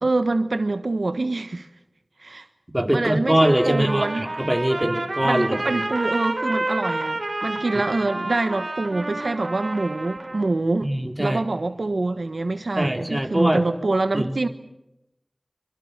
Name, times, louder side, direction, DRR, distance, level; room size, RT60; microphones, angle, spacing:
voice 1, 0.0-1.7 2.2-2.4 2.9-4.3 5.2-10.9 11.2-14.5, right 2 dB, 85° right, 1.2 m, -25 dB
voice 2, 2.7-5.8 10.8-11.4 12.8-13.6 14.1-14.4, right 1 dB, 15° right, 3.5 m, -22 dB
Trumpet, 3.4-10.5, right 2 dB, 60° right, 3.5 m, -29 dB
25.5 x 24.5 x 6.7 m
wide cardioid pair, 40°, 0 cm